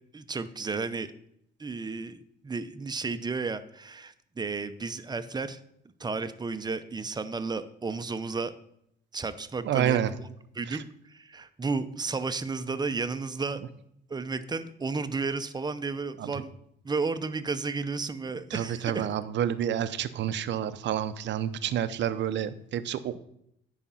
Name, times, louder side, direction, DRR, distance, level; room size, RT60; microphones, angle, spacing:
voice 1, 0.1-1.1 1.6-5.6 6.0-8.5 9.1-10.3 10.5-13.6 14.1-16.5 16.8-19.1, right 4 dB, 20° right, 11 dB, 0.7 m, -33 dB
voice 2, 9.6-10.1 16.2-16.3 18.5-23.2, right 10 dB, 70° right, 13 dB, 0.6 m, -29 dB
10.0 x 5.0 x 5.6 m, 0.73 s
cardioid pair, 90°, 19 cm